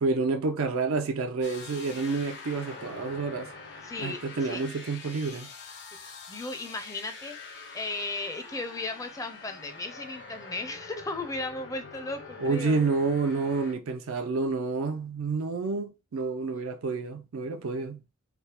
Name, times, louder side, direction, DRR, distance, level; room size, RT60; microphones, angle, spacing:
voice 1, 0.0-3.5 4.0-5.5 12.4-18.0, right 4 dB, 90° right, 0.4 m, -29 dB
sound 1, 1.4-13.7, left 4 dB, 60° left, 0.7 m, -45 dB
voice 2, 3.8-4.6 6.0-7.3 7.7-12.8, left 2 dB, 15° left, 0.5 m, -36 dB
3.4 x 2.1 x 4.2 m
head